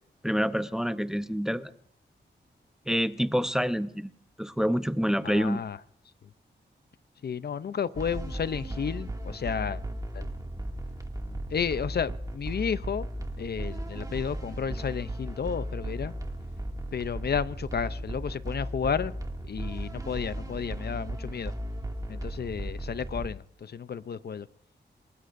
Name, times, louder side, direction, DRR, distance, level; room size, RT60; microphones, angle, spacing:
voice 1, 0.2-1.7 2.9-4.1 4.4-5.6, equal, 5° right, 11 dB, 0.7 m, -27 dB
voice 2, 5.2-5.8 7.2-9.8 10.1-10.3 11.5-13.1 13.4-16.1 16.9-19.1 19.5-21.5 22.1-24.5, left 7 dB, 60° left, 15 dB, 0.6 m, -32 dB
sound 1, 7.9-23.3, right 1 dB, 20° right, 2.2 m, -36 dB
28.5 x 19.5 x 2.6 m, 0.65 s
wide cardioid pair, 105°, 19 cm